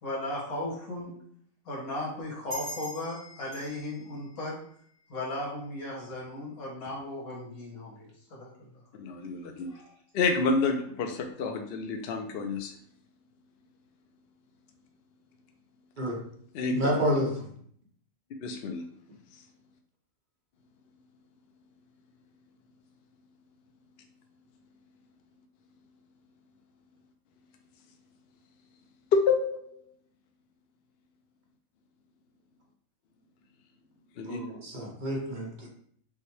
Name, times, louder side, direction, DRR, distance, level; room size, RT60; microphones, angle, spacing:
voice 1, 0.0-1.1 1.7-4.6 5.1-8.7 9.7-9.9, left 1 dB, 85° left, -4 dB, 1.8 m, -36 dB
sound 1, 2.5-5.6, right 1 dB, 55° right, 1.9 m, -44 dB
voice 2, 9.0-9.7 10.1-12.7 16.5-16.9 18.4-18.8 29.1-29.8 34.2-34.4, left 4 dB, 65° left, 4 dB, 0.6 m, -28 dB
voice 3, 16.7-17.3 34.3-35.7, equal, 40° right, -2 dB, 0.9 m, -29 dB
5.6 x 2.2 x 3.1 m, 0.62 s
omnidirectional pair, 1.5 m